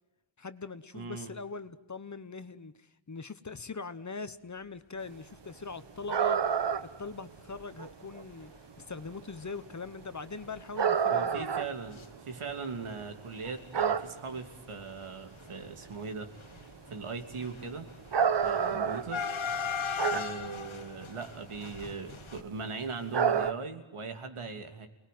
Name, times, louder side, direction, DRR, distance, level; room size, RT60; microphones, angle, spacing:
voice 1, 0.4-6.4 7.0-8.5 8.8-11.5 18.5-18.8, left 4 dB, 35° left, 12 dB, 1.1 m, -42 dB
voice 2, 0.9-1.3 11.1-16.3 16.9-17.9 18.4-19.2 20.1-24.9, right 4 dB, 80° right, 6 dB, 3.1 m, -39 dB
sound 1, 6.1-7.0 7.3-7.4 7.8-8.2 9.2-9.4 10.0-10.2 10.8-12.9 13.2-14.5 15.0-15.1 15.5-15.6 15.8-16.1 16.4-16.7 17.3-20.5 20.8-21.0 21.5-21.9 22.2-22.5 23.1-23.5, right 7 dB, 55° right, 1.1 m, -29 dB
sound 2, 6.4-6.6 7.1-7.2 7.4-7.6 8.4-8.5 8.9-9.1 9.4-9.5 9.8-12.1 12.3-13.0 13.3-22.4, left 6 dB, 70° left, 2.0 m, -39 dB
29.5 x 20.0 x 9.5 m, 1.0 s
wide cardioid pair, 155°, 50 cm